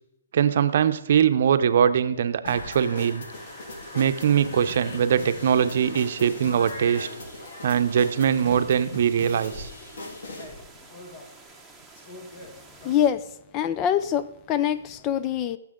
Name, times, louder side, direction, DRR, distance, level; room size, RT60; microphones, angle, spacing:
voice 1, 0.3-3.2 3.9-7.1 7.6-9.7, right 8 dB, 55° right, 10 dB, 0.7 m, -22 dB
sound 1, 2.1-2.7 4.4-4.7 5.4-6.3 7.0-7.3 8.4-8.9 9.5-13.3 13.6-14.2 14.4-15.0, left 1 dB, 45° left, 2.2 m, -47 dB
sound 2, 2.5-10.5, left 2 dB, 70° left, 2.2 m, -38 dB
sound 3, 3.3-13.1, right 3 dB, ahead, 1.3 m, -50 dB
voice 2, 12.8-13.2 13.5-15.6, left 10 dB, 25° left, 14 dB, 0.5 m, -24 dB
17.0 x 7.3 x 3.8 m, 0.86 s
hypercardioid pair, 145°, 0 cm